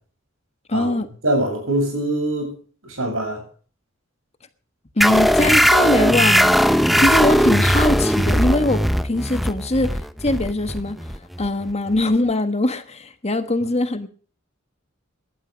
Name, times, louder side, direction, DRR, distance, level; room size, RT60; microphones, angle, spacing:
voice 1, 0.7-1.1 5.0-6.6 7.0-11.0 11.4-14.1, left 2 dB, 30° left, 1.4 m, -22 dB
voice 2, 1.2-2.5 2.8-3.4, right 1 dB, 80° right, 8.0 m, -23 dB
sound 1, 5.0-12.1, equal, ahead, 0.7 m, -18 dB
18.0 x 12.0 x 5.2 m
head